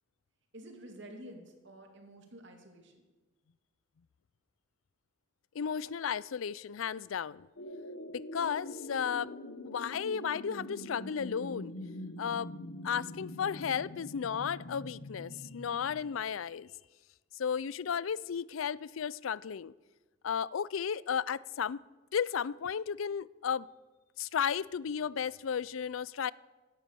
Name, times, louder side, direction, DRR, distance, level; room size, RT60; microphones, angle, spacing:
voice 1, 0.5-3.0 13.2-13.3, right 1 dB, 65° right, 2.7 m, -50 dB
voice 2, 5.6-7.5 8.3-9.4 9.6-11.7 12.2-12.5 12.8-16.7 17.4-19.7 20.2-21.8 22.1-23.7 24.2-26.3, left 7 dB, 85° left, 0.4 m, -34 dB
sound 1, 7.6-16.1, left 1 dB, 65° left, 1.2 m, -44 dB
16.5 x 11.5 x 6.9 m
head